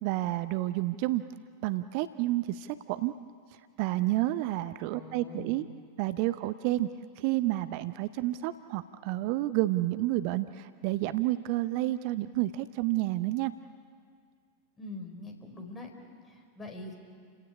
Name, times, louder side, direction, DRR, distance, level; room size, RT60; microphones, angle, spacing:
voice 1, 0.0-1.2 1.6-3.1 3.8-5.6 6.0-6.9 7.2-13.5, right 16 dB, 45° right, 13 dB, 0.6 m, -30 dB
voice 2, 4.9-5.6 14.8-15.9 16.3-17.0, left 2 dB, 15° left, 4 dB, 4.5 m, -43 dB
29.5 x 16.5 x 9.9 m, 2.2 s
figure-of-eight pair, 90°, 0 cm